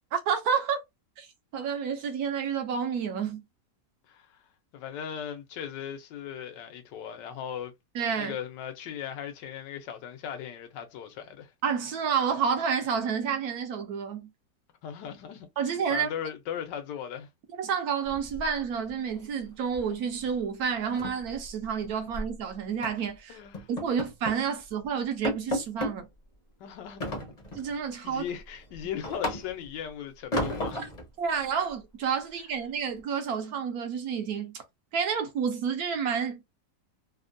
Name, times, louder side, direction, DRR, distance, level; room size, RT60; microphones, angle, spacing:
voice 1, 0.1-0.8 1.2-1.3 1.5-3.4 7.9-8.3 11.6-14.3 15.6-16.1 17.6-23.4 23.7-26.1 27.5-28.2 30.7-30.8 31.2-34.6 34.9-36.5, right 7 dB, 70° right, 1.0 m, -29 dB
voice 2, 4.1-4.4 4.7-7.7 8.1-11.5 14.8-17.3 23.3-23.7 26.6-27.0 28.0-30.8, left 9 dB, 85° left, 1.3 m, -38 dB
sound 1, 18.1-18.9 19.2-19.4 19.7-20.0 20.2-20.3 20.7-22.3 22.8-23.1 23.5-24.5 24.8-24.9 25.2-26.0 27.0-27.7 28.2-29.8 30.3-31.1, left 1 dB, 40° left, 0.6 m, -34 dB
3.3 x 2.1 x 2.5 m
omnidirectional pair, 1.8 m